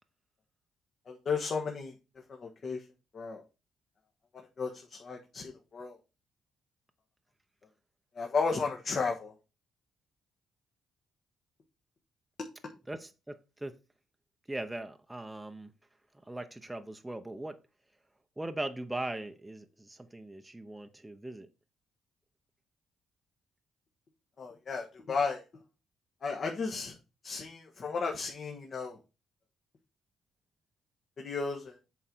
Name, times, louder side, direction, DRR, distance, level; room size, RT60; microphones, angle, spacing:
voice 1, 1.1-1.9 2.3-2.8 3.1-3.4 4.3-6.0 8.1-9.3 24.4-25.4 26.2-26.9 27.2-29.0 31.2-31.8, left 4 dB, 50° left, 1.4 m, -34 dB
voice 2, 12.9-13.8 14.5-15.7 16.2-17.6 18.4-21.5, right 2 dB, 10° right, 0.7 m, -40 dB
7.7 x 3.9 x 6.0 m
cardioid pair, 90°, 0 cm